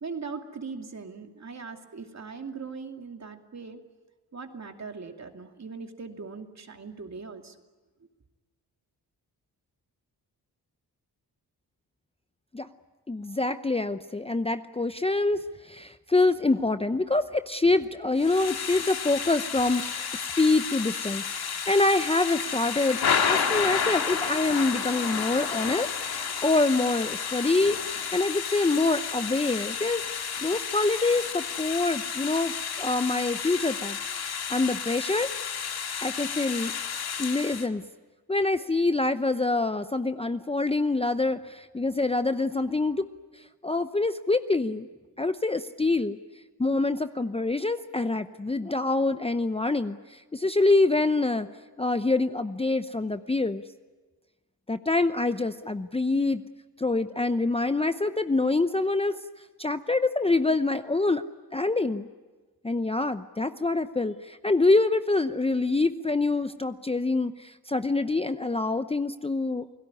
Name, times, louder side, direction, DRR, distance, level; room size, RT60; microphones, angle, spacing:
voice 1, 0.0-3.8 4.3-7.5, right 4 dB, 40° right, 4 dB, 2.6 m, -40 dB
voice 2, 13.1-35.3 36.0-36.7 37.2-37.8 38.3-43.1 43.4-44.9 45.2-46.2 46.6-51.5 51.8-53.6 54.7-56.4 56.8-59.2 59.6-61.2 61.5-62.1 62.6-69.7, left 2 dB, 15° left, 10 dB, 0.7 m, -26 dB
Thunder / Rain, 18.2-37.7, left 6 dB, 65° left, 2.2 m, -31 dB
29.0 x 17.5 x 9.7 m, 1.3 s
cardioid pair, 70°, 40 cm